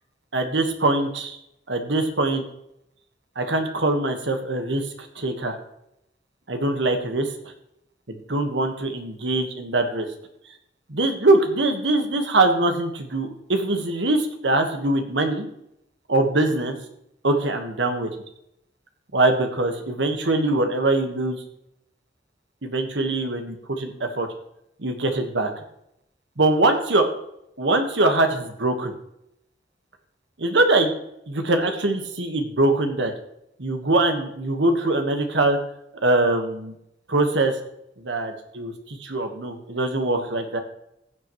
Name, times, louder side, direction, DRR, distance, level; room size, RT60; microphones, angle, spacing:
voice 1, 0.3-1.4 1.7-2.4 3.3-5.6 6.5-7.3 8.1-10.1 10.9-15.5 16.1-16.8 17.2-18.1 19.1-21.4 22.6-24.3 24.8-25.5 26.4-27.1 27.6-28.9 30.4-30.9 31.3-33.1 33.6-35.6 36.0-36.7 37.1-37.5 38.0-40.6, right 2 dB, 80° right, 5 dB, 1.4 m, -22 dB
15.5 x 7.8 x 3.1 m, 0.79 s
head